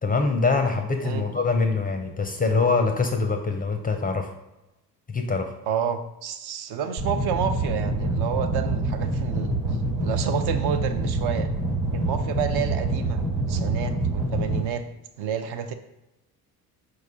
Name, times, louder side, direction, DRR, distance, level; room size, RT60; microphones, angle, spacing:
voice 1, 0.0-4.3 5.1-5.5, left 4 dB, 20° left, 5 dB, 0.4 m, -24 dB
voice 2, 5.7-9.6 10.0-11.5 11.9-14.8 15.2-15.7, right 8 dB, 55° right, 8 dB, 0.6 m, -29 dB
sound 1, 7.0-14.6, right 2 dB, 80° right, 1.3 m, -26 dB
4.5 x 2.3 x 4.7 m, 0.95 s
hypercardioid pair, 55°, 47 cm